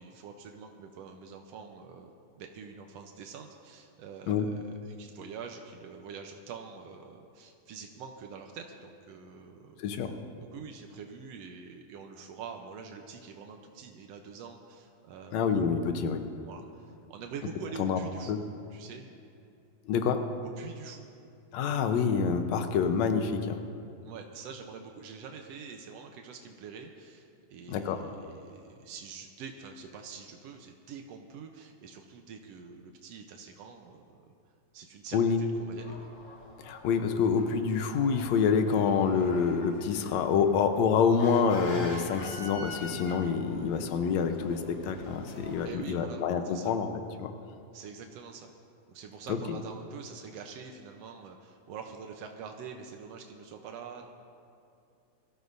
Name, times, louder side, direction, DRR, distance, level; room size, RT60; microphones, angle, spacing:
voice 1, 0.0-9.8 10.5-15.6 16.4-16.8 17.1-18.4 18.7-19.1 20.6-21.1 24.0-34.2 34.7-35.2 35.6-36.1 45.6-46.7 47.7-48.5 48.9-54.1, right 6 dB, 90° right, 3 dB, 1.4 m, -45 dB
voice 2, 9.8-10.1 15.3-16.2 17.8-18.0 18.3-18.4 19.9-20.2 21.5-23.6 27.7-28.0 35.1-35.4 36.6-46.9 47.2-47.3 49.3-49.4, left 6 dB, 70° left, 6 dB, 1.8 m, -27 dB
sound 1, 35.8-45.7, left 1 dB, 40° left, 2.0 m, -45 dB
23.5 x 14.5 x 2.7 m, 2.6 s
omnidirectional pair, 4.0 m